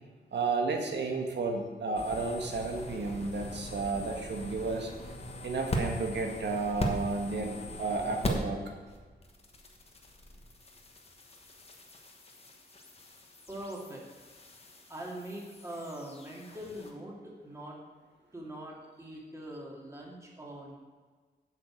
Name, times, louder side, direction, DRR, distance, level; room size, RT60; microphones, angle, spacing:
voice 1, 0.3-4.9 5.4-8.6, right 3 dB, 80° right, 3 dB, 1.5 m, -32 dB
sound 1, 2.0-8.6 8.9-16.9, left 1 dB, 35° left, 1.3 m, -40 dB
voice 2, 13.5-14.3 14.9-17.8 18.3-20.8, right 1 dB, 15° right, -3 dB, 2.3 m, -43 dB
7.8 x 6.9 x 6.3 m, 1.4 s
wide cardioid pair, 135°, 18 cm